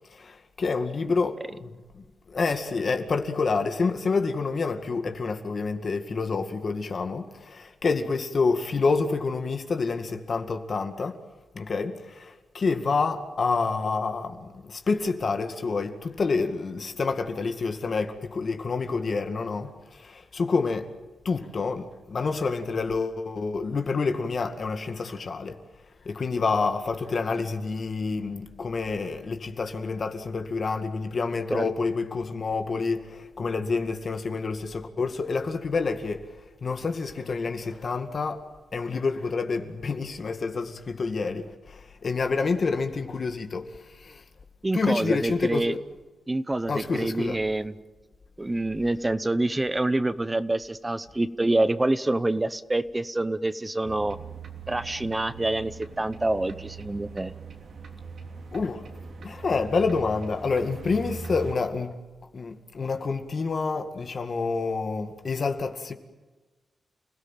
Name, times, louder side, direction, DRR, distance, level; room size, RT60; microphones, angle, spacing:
voice 1, 0.1-2.0 2.3-11.2 11.5-20.9 21.3-25.6 26.1-36.2 36.6-38.4 38.7-43.7 44.0-44.2 44.7-45.8 46.7-47.4 58.5-58.8 59.2-62.0 62.3-65.9, left 4 dB, 45° left, 2.1 m, -28 dB
voice 2, 44.6-45.8 46.3-47.7 48.4-54.2 54.7-57.3, right 2 dB, 15° right, 0.8 m, -26 dB
sound 1, 53.8-61.5, right 4 dB, 60° right, 3.1 m, -41 dB
29.5 x 17.5 x 9.1 m
wide cardioid pair, 130°, 0 cm